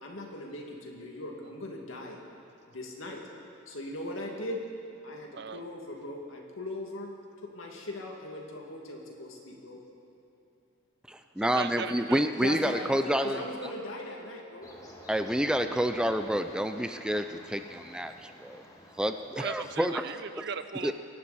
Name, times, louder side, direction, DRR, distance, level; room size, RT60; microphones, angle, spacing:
voice 1, 0.0-2.2 2.7-3.2 3.7-4.6 5.0-7.1 7.4-9.8 11.7-11.8 12.4-13.0 13.2-14.7, left 1 dB, 85° left, 0 dB, 2.3 m, -39 dB
voice 2, 5.3-5.6 11.4-12.2 12.8-12.9 19.4-20.9, right 6 dB, 60° right, 11 dB, 0.7 m, -37 dB
voice 3, 11.1-13.4 15.1-18.6 19.0-20.0 20.8-20.9, equal, 5° right, 8 dB, 0.4 m, -28 dB
sound 1, 14.6-20.0, equal, 20° left, 1.6 m, -51 dB
25.0 x 11.0 x 4.2 m, 2.7 s
head